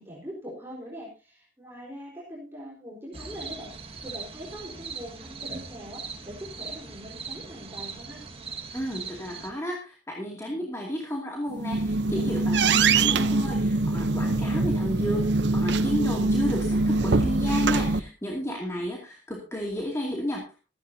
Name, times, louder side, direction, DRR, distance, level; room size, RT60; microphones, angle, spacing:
voice 1, 0.0-8.2 12.7-13.4, equal, 15° right, -4 dB, 4.2 m, -42 dB
sound 1, 3.1-9.5, right 4 dB, 35° right, 1.7 m, -40 dB
voice 2, 8.7-20.6, equal, 15° left, -1 dB, 2.5 m, -32 dB
sound 2, 11.5-18.0, right 3 dB, 65° right, 0.8 m, -23 dB
16.0 x 14.5 x 2.8 m, 0.31 s
head